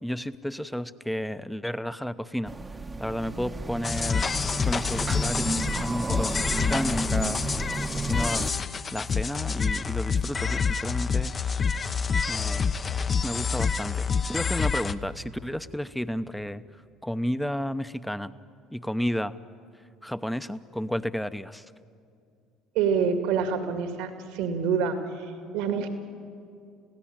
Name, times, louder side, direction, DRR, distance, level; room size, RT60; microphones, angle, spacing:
voice 1, 0.0-2.5 3.0-4.3 4.6-7.5 7.9-8.5 8.9-11.4 12.3-12.6 13.2-16.6 17.0-18.3 18.7-19.3 20.0-21.7, equal, 5° left, 13 dB, 0.8 m, -32 dB
sound 1, 2.5-8.5, right 3 dB, 20° right, 1.0 m, -32 dB
sound 2, 3.8-15.0, left 5 dB, 35° left, 0.9 m, -27 dB
voice 2, 22.7-25.9, right 6 dB, 75° right, 7 dB, 2.2 m, -27 dB
27.5 x 16.5 x 8.9 m, 2.4 s
hypercardioid pair, 70°, 0 cm